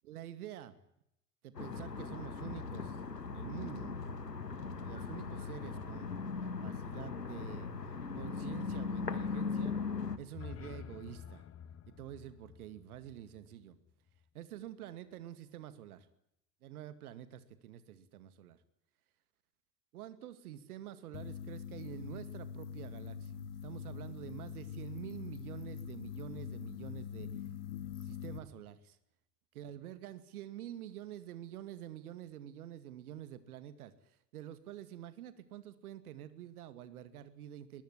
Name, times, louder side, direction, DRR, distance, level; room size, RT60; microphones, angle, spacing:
voice 1, 0.0-0.8 1.4-4.1 4.8-6.1 6.4-7.7 8.1-9.7 10.2-11.4 11.9-13.8 14.3-16.1 16.6-18.6 19.9-27.5 28.0-29.0 29.5-37.8, right 11 dB, 65° right, 13 dB, 2.4 m, -48 dB
sound 1, 1.5-10.2, left 5 dB, 85° left, 2.1 m, -39 dB
sound 2, 10.2-14.2, left 8 dB, 30° left, 1.6 m, -50 dB
sound 3, 21.1-28.4, left 8 dB, 65° left, 3.1 m, -44 dB
22.0 x 22.0 x 9.9 m, 0.79 s
figure-of-eight pair, 75°, 47 cm